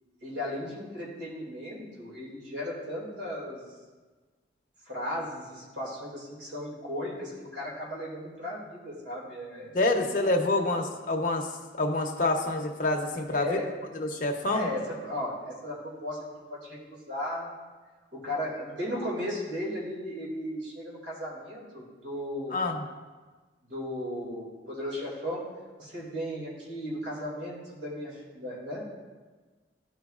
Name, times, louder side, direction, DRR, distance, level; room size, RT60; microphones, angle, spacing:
voice 1, 0.2-3.6 4.9-10.0 10.6-10.8 13.3-13.7 14.5-17.5 18.1-22.6 23.6-25.5 25.8-28.9, left 1 dB, 80° right, -4 dB, 2.2 m, -36 dB
voice 2, 9.7-11.5 11.8-13.6 14.0-14.7 22.5-22.8, left 2 dB, 45° left, 2 dB, 0.7 m, -27 dB
13.0 x 4.6 x 2.4 m, 1.3 s
head